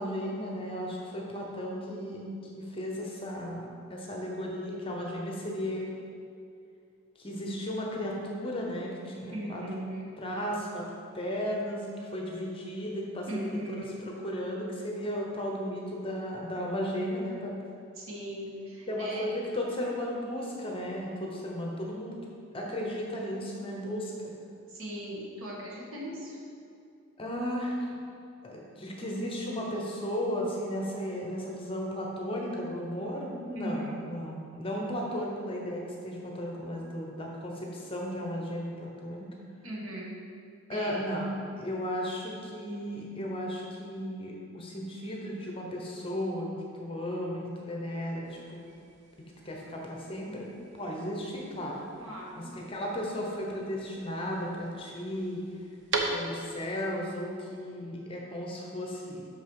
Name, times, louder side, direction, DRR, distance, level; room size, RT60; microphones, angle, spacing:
voice 1, 0.0-5.9 7.2-9.6 10.2-10.8 11.1-17.5 18.9-22.2 22.5-24.1 27.2-27.9 28.4-39.3 40.7-46.5 46.8-48.6 49.4-50.5 50.7-51.8 52.4-55.4 56.1-59.3, equal, 25° left, -1 dB, 0.9 m, -35 dB
voice 2, 9.3-10.1 13.3-14.1 17.9-19.3 24.7-26.4 33.5-34.0 39.6-40.2 40.7-41.0 52.0-52.5, equal, 75° right, -3 dB, 1.5 m, -38 dB
sound 1, 48.2-56.7, right 3 dB, 55° right, 0.7 m, -40 dB
6.1 x 5.4 x 4.8 m, 2.5 s
head